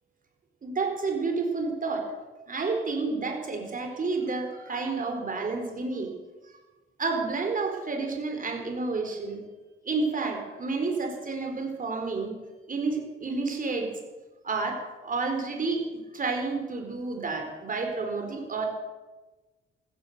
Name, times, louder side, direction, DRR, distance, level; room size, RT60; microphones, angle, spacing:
voice 1, 0.6-2.1 2.5-6.1 7.0-9.4 9.8-12.3 12.7-13.9 14.4-15.8 16.1-18.7, right 3 dB, 40° right, 4 dB, 4.3 m, -30 dB
15.0 x 14.0 x 6.7 m, 1.2 s
cardioid pair, 100°, 21 cm